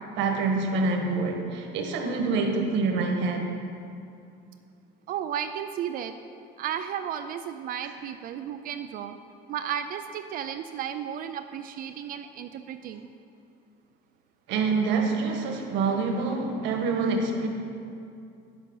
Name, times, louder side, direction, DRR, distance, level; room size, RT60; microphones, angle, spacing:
voice 1, 0.1-3.5 7.8-7.9 14.5-17.5, right 4 dB, 70° right, 3 dB, 1.4 m, -26 dB
voice 2, 5.1-6.1 6.6-9.2 9.5-13.2, right 9 dB, 45° right, 8 dB, 0.4 m, -34 dB
9.4 x 7.5 x 5.5 m, 2.5 s
cardioid pair, 145°, 20 cm